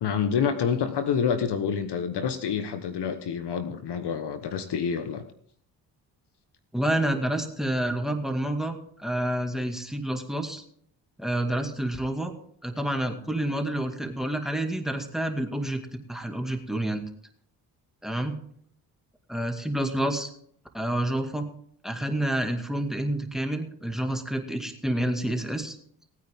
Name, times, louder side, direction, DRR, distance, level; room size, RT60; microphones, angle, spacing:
voice 1, 0.0-5.2, left 7 dB, 55° left, 9 dB, 1.3 m, -27 dB
voice 2, 6.7-10.6 11.2-12.3 12.6-17.0 18.0-18.3 19.3-20.3 20.7-21.5 21.8-25.8, right 1 dB, ahead, 6 dB, 2.1 m, -28 dB
18.5 x 9.3 x 3.7 m, 0.62 s
hypercardioid pair, 50°, 47 cm